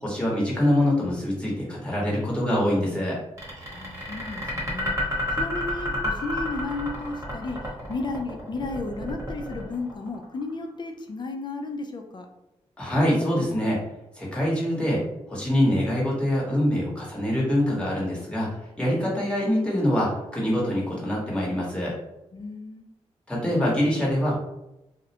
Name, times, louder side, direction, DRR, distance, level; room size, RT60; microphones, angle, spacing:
voice 1, 0.0-3.2 12.8-13.8 14.2-15.0 15.3-18.5 18.8-21.9 23.3-24.3, left 1 dB, 10° left, -5 dB, 1.1 m, -24 dB
sound 1, 3.4-10.5, equal, 25° right, 1.0 m, -31 dB
voice 2, 3.7-7.6 7.9-12.3 22.3-22.9, left 3 dB, 40° left, 4 dB, 0.4 m, -33 dB
2.3 x 2.1 x 2.8 m, 0.92 s
cardioid pair, 60°, 12 cm